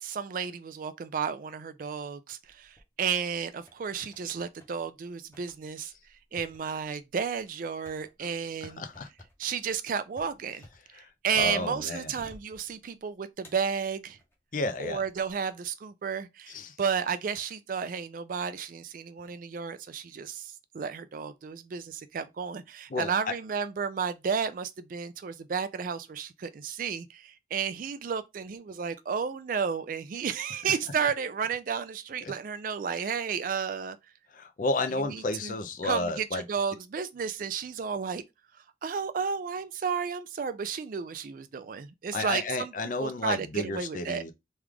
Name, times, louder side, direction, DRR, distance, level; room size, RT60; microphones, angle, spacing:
voice 1, 0.0-5.9 6.3-8.8 9.4-10.7 10.9-14.2 14.8-34.0 35.1-35.5 35.8-38.2 38.8-42.7 43.0-44.2, right 6 dB, 45° right, 0.3 m, -32 dB
sound 1, 2.4-3.3 3.7-4.3 4.6-4.8 5.3-11.8 12.2-13.0 13.4-14.4 14.9-15.3, left 1 dB, 15° left, 0.8 m, -55 dB
voice 2, 8.6-9.1 10.9-11.1 11.4-12.1 14.5-15.0 16.5-16.8 22.9-23.1 32.2-32.3 33.0-33.1 34.3-36.4 42.1-44.3, left 2 dB, 45° left, 0.5 m, -32 dB
3.1 x 2.4 x 3.4 m
head